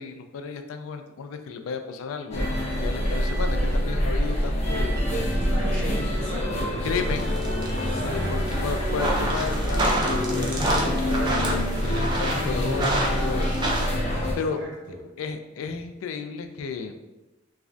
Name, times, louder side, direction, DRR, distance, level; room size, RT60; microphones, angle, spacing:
voice 1, 0.0-5.0 6.8-7.4 7.9-13.7 14.4-14.6 15.2-17.0, left 5 dB, 85° left, 7 dB, 0.3 m, -33 dB
sound 1, 2.3-14.4, equal, 35° left, 0.5 m, -26 dB
voice 2, 5.0-7.3 7.8-8.9 14.3-15.0, right 1 dB, 65° right, -1 dB, 0.6 m, -36 dB
sound 2, 7.0-13.9, right 1 dB, 25° right, 0.4 m, -29 dB
3.1 x 2.4 x 2.4 m, 1.0 s
head